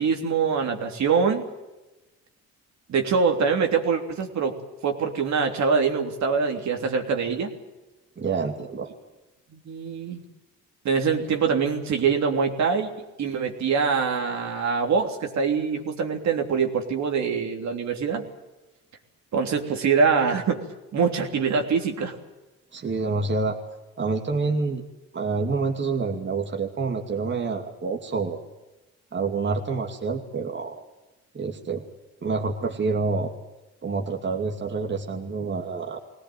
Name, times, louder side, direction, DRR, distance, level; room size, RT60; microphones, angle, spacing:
voice 1, 0.0-1.4 2.9-4.5 4.8-7.5 9.5-10.2 10.9-12.9 13.2-18.2 19.3-20.6 20.9-22.2, right 5 dB, 65° right, 3 dB, 3.3 m, -24 dB
voice 2, 8.2-8.9 22.7-23.6 24.0-24.8 25.1-28.4 29.1-30.8 31.3-31.8 32.2-33.3 33.8-36.0, right 4 dB, 40° right, 2 dB, 2.5 m, -27 dB
21.5 x 18.0 x 9.4 m, 1.0 s
cardioid pair, 90°, 30 cm